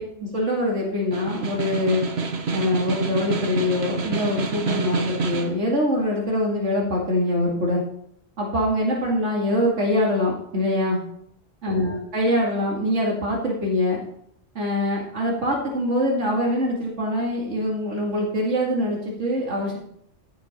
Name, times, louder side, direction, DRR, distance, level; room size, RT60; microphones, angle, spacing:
voice 1, 0.2-2.1 2.5-7.8 8.4-11.0 11.6-14.0 14.5-19.8, left 1 dB, 85° right, -3 dB, 2.6 m, -24 dB
Snare drum, 1.0-5.6, right 4 dB, 60° right, 1.4 m, -27 dB
15.0 x 6.5 x 4.4 m, 0.70 s
omnidirectional pair, 1.2 m